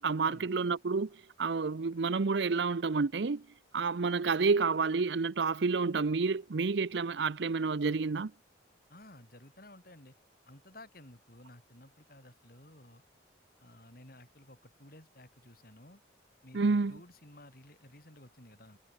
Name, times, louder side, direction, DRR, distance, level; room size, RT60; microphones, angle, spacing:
voice 1, 0.0-3.5 3.7-8.3 16.5-17.0, right 4 dB, 65° right, 0.6 m, -29 dB
voice 2, 8.9-10.2 10.5-13.0 13.6-16.0 16.4-18.8, left 1 dB, 50° left, 5.6 m, -54 dB
head